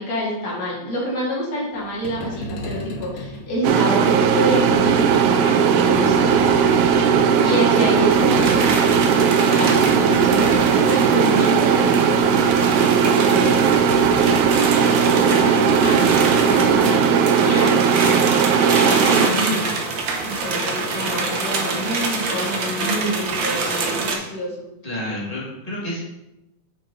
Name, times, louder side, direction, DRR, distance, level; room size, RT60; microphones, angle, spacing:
voice 1, 0.0-6.3 7.4-12.2 13.1-13.8 14.8-17.8 18.7-19.6 20.2-24.7, equal, 60° left, -5 dB, 3.4 m, -27 dB
sound 1, 1.8-18.0, left 1 dB, 85° left, 0.8 m, -34 dB
sound 2, 3.6-19.3, right 7 dB, 90° right, 2.1 m, -17 dB
sound 3, 8.1-24.2, right 4 dB, 60° right, 1.3 m, -26 dB
voice 2, 24.8-26.0, left 1 dB, 15° left, -6 dB, 2.2 m, -29 dB
7.2 x 6.2 x 4.2 m, 0.95 s
omnidirectional pair, 3.3 m